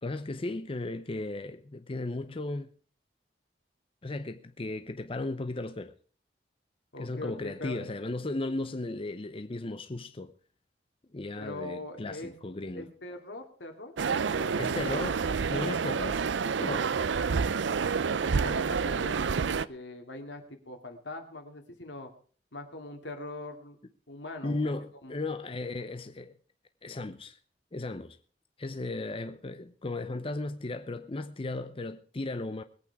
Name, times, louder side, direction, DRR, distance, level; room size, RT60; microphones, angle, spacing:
voice 1, 0.0-2.7 4.0-5.9 7.0-10.3 11.1-12.9 14.6-15.2 15.5-16.2 16.5-17.2 24.4-26.3 26.8-27.4 27.7-28.2 28.6-32.6, left 2 dB, 30° left, 0.7 m, -35 dB
voice 2, 6.9-7.9 11.3-12.4 12.7-15.1 18.3-22.1 22.5-23.8 24.1-24.7 25.0-25.2, left 2 dB, 80° left, 2.5 m, -42 dB
sound 1, 14.0-19.7, right 5 dB, 90° right, 0.5 m, -28 dB
21.0 x 8.6 x 4.7 m
head